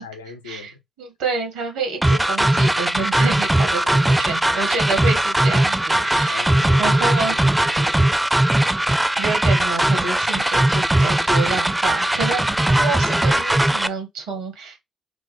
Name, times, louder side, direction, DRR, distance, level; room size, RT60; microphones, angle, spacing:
voice 1, 0.0-0.8 3.6-4.4 5.5-8.0, left 5 dB, 90° left, 0.4 m, -41 dB
voice 2, 1.0-6.5 6.8-7.4 8.9-14.8, right 4 dB, 75° right, 1.3 m, -28 dB
sound 1, 2.0-13.9, right 1 dB, 10° right, 0.4 m, -19 dB
6.1 x 2.1 x 3.0 m
hypercardioid pair, 40°, 0 cm